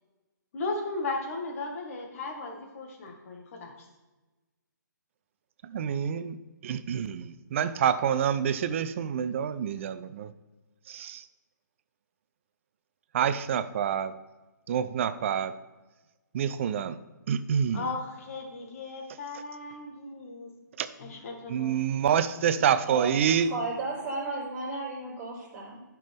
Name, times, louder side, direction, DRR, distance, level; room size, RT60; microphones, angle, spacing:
voice 1, 0.5-3.9 17.7-20.5 21.0-21.7, left 3 dB, 45° left, 2 dB, 1.8 m, -36 dB
voice 2, 5.6-6.4 6.6-10.3 10.9-11.2 13.1-14.1 14.7-15.6 16.3-17.0 17.3-17.9 20.8-20.9 21.5-23.5, right 8 dB, 40° right, 13 dB, 0.5 m, -27 dB
voice 3, 22.6-25.8, right 2 dB, 15° right, -12 dB, 2.9 m, -35 dB
11.0 x 5.9 x 3.5 m, 1.2 s
hypercardioid pair, 145°, 10 cm